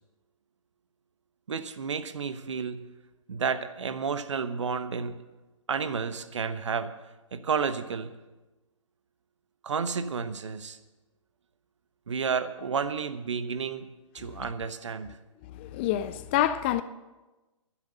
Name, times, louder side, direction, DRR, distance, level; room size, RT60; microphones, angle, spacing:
voice 1, 1.5-2.8 3.3-5.2 5.7-6.9 7.3-8.1 9.6-10.8 12.1-13.8 14.1-15.2, right 6 dB, 60° right, 12 dB, 1.0 m, -31 dB
voice 2, 15.5-16.8, left 12 dB, 20° left, 13 dB, 0.3 m, -27 dB
11.5 x 11.0 x 6.8 m, 1.1 s
figure-of-eight pair, 125°, 17 cm